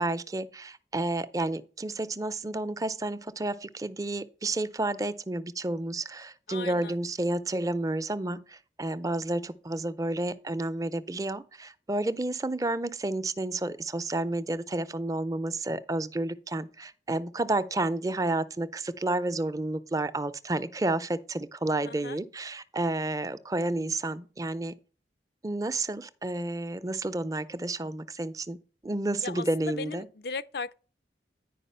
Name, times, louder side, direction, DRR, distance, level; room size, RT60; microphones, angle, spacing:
voice 1, 0.0-24.7 25.4-28.6 28.8-30.1, right 2 dB, 20° right, 0.5 m, -31 dB
voice 2, 6.5-7.0 21.8-22.2 29.2-30.7, left 4 dB, 60° left, 0.5 m, -37 dB
10.0 x 5.0 x 5.5 m
head